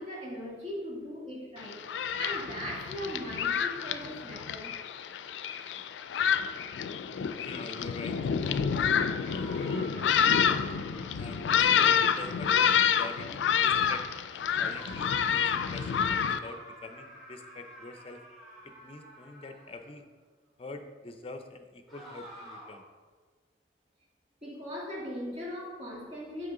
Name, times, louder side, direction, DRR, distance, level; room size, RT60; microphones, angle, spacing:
voice 1, 0.0-1.9 2.2-4.8 24.4-26.5, equal, 35° right, -4 dB, 1.8 m, -39 dB
Thunderstorm, 1.6-16.4, left 7 dB, 85° left, 0.3 m, -28 dB
voice 2, 7.4-9.0 11.1-18.2 18.6-20.1 20.6-22.8, left 2 dB, 30° left, 7 dB, 0.5 m, -45 dB
sound 1, 9.2-12.6 14.6-19.9 21.9-22.9, equal, ahead, 1.9 m, -48 dB
6.6 x 5.4 x 3.8 m, 1.5 s
head